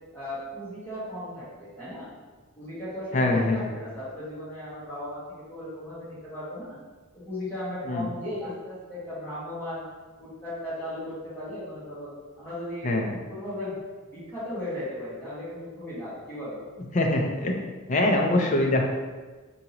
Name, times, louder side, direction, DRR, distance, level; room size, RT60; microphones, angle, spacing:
voice 1, 0.1-2.1 2.6-6.8 7.1-9.8 10.2-13.0 13.3-13.8 14.1-16.6, left 1 dB, 10° left, -11 dB, 1.5 m, -36 dB
voice 2, 3.1-3.7 7.8-8.1 12.8-13.2 16.9-17.6 17.9-18.8, left 2 dB, 35° left, 1 dB, 0.5 m, -23 dB
4.8 x 2.7 x 2.9 m, 1.3 s
head